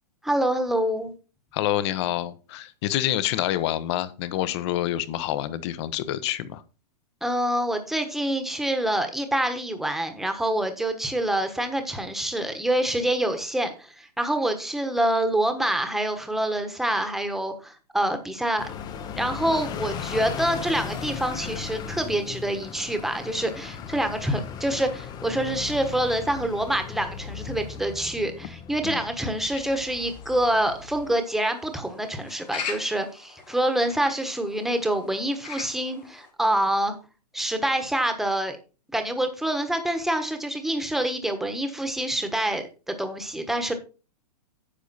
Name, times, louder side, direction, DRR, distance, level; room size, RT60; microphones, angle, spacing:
voice 1, 0.2-1.1 7.2-18.7 19.2-36.9 37.3-38.6 38.9-43.7, right 1 dB, ahead, 1.3 m, -26 dB
voice 2, 1.5-6.6 28.8-29.0, left 13 dB, 40° left, 1.0 m, -27 dB
sound 1, 18.6-31.1, left 7 dB, 20° left, 0.8 m, -37 dB
sound 2, 29.6-36.3, left 6 dB, 85° left, 4.2 m, -41 dB
10.0 x 6.9 x 4.2 m
hypercardioid pair, 145°, 21 cm